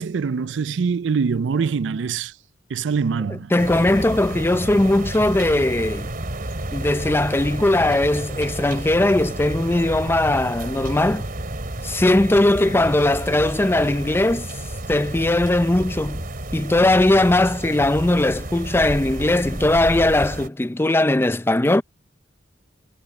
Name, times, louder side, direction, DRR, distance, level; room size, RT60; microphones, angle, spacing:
voice 1, 0.0-2.3 2.7-3.5, right 5 dB, 70° right, 0.4 m, -24 dB
voice 2, 3.3-6.1 6.7-11.3 11.8-14.5 14.9-16.2 16.5-21.8, left 1 dB, 10° left, 0.5 m, -19 dB
sound 1, 3.6-20.5, right 1 dB, 50° right, 2.9 m, -31 dB
head